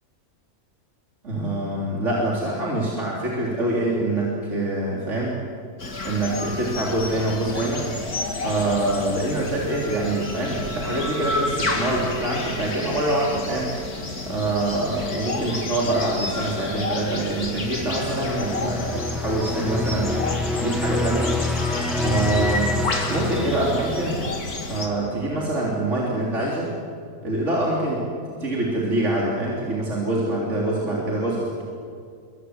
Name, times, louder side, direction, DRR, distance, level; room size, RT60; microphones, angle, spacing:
voice 1, 1.2-5.4 6.0-7.8 8.4-13.7 14.2-20.1 20.5-21.3 22.0-24.2 24.7-26.7 27.2-28.0 28.3-31.6, right 2 dB, 50° right, -4 dB, 3.9 m, -25 dB
sound 1, 5.8-24.9, left 2 dB, 85° left, 3.2 m, -31 dB
sound 2, 17.5-24.8, left 2 dB, ahead, 1.0 m, -27 dB
27.0 x 24.0 x 8.2 m, 2.3 s
omnidirectional pair, 1.6 m